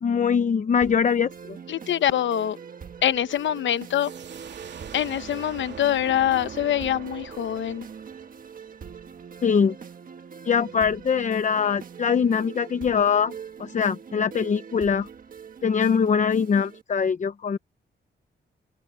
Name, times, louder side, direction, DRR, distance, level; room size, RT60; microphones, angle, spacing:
voice 1, 0.0-1.6 9.4-9.7 10.4-13.3 13.6-15.1 15.6-17.6, left 6 dB, 40° left, 0.8 m, -22 dB
sound 1, 0.8-16.8, right 6 dB, 45° right, 1.5 m, -42 dB
voice 2, 1.7-2.6 3.0-4.1 4.9-7.8 16.3-16.4, left 11 dB, 85° left, 0.9 m, -24 dB
sound 2, 3.8-9.3, right 8 dB, 70° right, 3.0 m, -43 dB
open air
wide cardioid pair, 145°, 19 cm